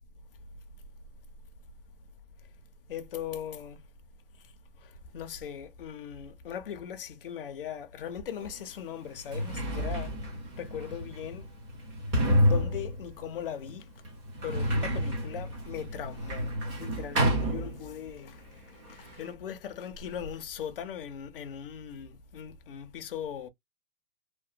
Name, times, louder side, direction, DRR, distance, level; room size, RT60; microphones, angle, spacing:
voice 1, 2.9-3.8 4.8-10.1 10.6-11.5 12.4-13.9 14.4-18.5 18.9-23.5, left 8 dB, 40° left, 0.4 m, -39 dB
Sliding door, 8.4-8.5 9.1-18.3 18.5-19.3, equal, 20° right, 0.6 m, -30 dB
2.9 x 2.0 x 2.4 m
hypercardioid pair, 155°, 48 cm